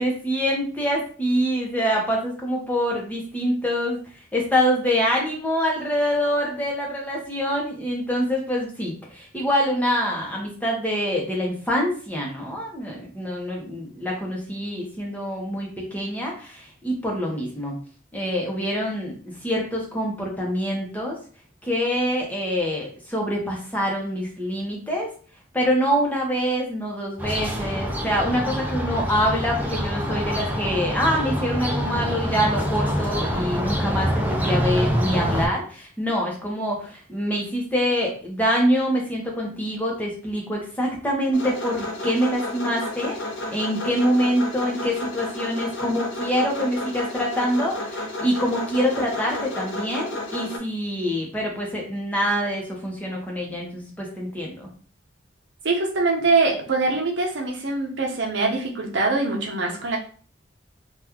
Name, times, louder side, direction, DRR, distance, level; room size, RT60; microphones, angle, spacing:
voice 1, 0.0-4.0 4.3-17.7 18.1-21.2 21.6-25.1 25.5-43.2 43.5-54.7, equal, 10° left, -2 dB, 0.8 m, -25 dB
sound 1, 27.2-35.5, equal, 10° right, 0.4 m, -25 dB
sound 2, 41.3-50.6, left 1 dB, 75° left, 0.8 m, -32 dB
voice 2, 55.6-60.0, right 3 dB, 70° right, 1 dB, 0.8 m, -23 dB
2.9 x 2.3 x 3.5 m, 0.41 s
head